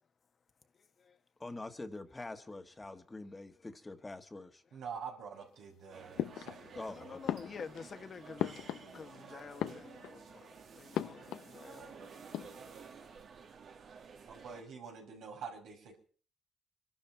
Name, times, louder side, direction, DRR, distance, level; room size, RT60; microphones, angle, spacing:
voice 1, 0.7-1.2 6.9-13.2, left 5 dB, 45° left, 1.4 m, -50 dB
voice 2, 1.4-4.6 6.7-7.5, left 2 dB, 20° left, 1.6 m, -45 dB
voice 3, 4.7-7.2 14.3-16.0, right 6 dB, 80° right, 5.4 m, -46 dB
sound 1, 5.9-14.6, right 6 dB, 60° right, 2.2 m, -53 dB
sound 2, 6.2-6.9 7.3-9.2 9.5-10.3 10.9-11.6 11.8-11.9 12.2-12.9, left 11 dB, 85° left, 0.8 m, -39 dB
24.5 x 12.0 x 4.6 m
cardioid pair, 90°, 0 cm